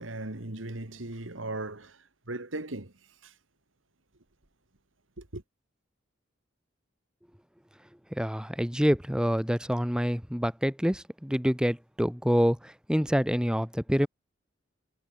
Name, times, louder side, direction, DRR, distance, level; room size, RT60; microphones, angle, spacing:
voice 1, 0.0-2.9 3.2-3.3 5.2-5.4, right 2 dB, 80° right, 2.6 m, -38 dB
voice 2, 8.1-14.1, equal, 5° right, 2.5 m, -27 dB
head